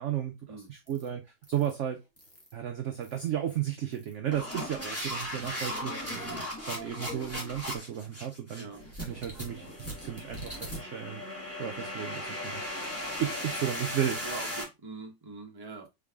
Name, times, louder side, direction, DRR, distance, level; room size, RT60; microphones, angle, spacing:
voice 1, 0.0-2.0 2.5-6.4 6.7-8.7 9.0-11.2 11.6-12.6 13.2-14.2, right 10 dB, 65° right, 0.7 m, -34 dB
sound 1, 0.9-1.1 1.4-1.7 2.2-2.5 3.0-3.3 3.9-14.6, equal, 10° left, 1.3 m, -37 dB
voice 2, 14.2-15.9, right 4 dB, 20° right, 0.8 m, -43 dB
3.9 x 3.8 x 3.5 m
omnidirectional pair, 1.9 m